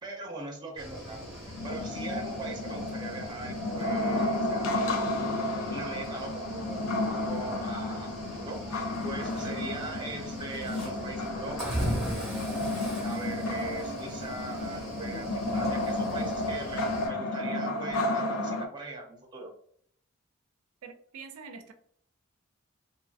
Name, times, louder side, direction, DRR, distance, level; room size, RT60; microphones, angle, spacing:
voice 1, 0.0-12.6 13.0-19.5, right 2 dB, 20° right, 1 dB, 0.6 m, -40 dB
Cricket / Waves surf, 0.8-17.1, equal, ahead, 0.9 m, -40 dB
sound 1, 1.5-18.7, left 2 dB, 85° left, 0.4 m, -32 dB
voice 2, 20.8-21.7, right 5 dB, 90° right, 8 dB, 0.4 m, -45 dB
2.7 x 2.5 x 2.3 m, 0.62 s
head